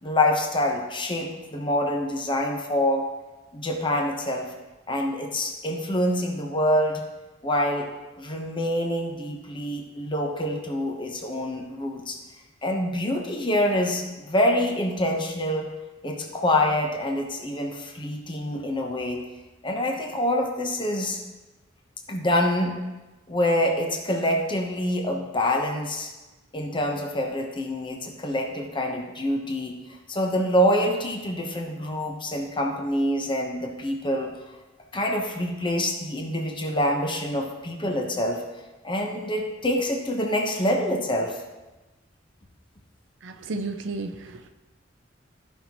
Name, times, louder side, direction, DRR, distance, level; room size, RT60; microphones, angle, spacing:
voice 1, 0.0-3.0 3.5-4.5 4.9-7.0 7.4-7.9 8.2-12.2 12.6-15.7 16.0-19.2 19.6-21.2 22.1-22.7 23.3-26.1 26.5-29.8 30.1-34.3 34.9-38.4 38.8-41.4, left 1 dB, 25° left, 2 dB, 1.0 m, -26 dB
voice 2, 43.2-44.5, right 3 dB, 70° right, 7 dB, 0.6 m, -33 dB
14.0 x 5.6 x 3.0 m, 1.1 s
head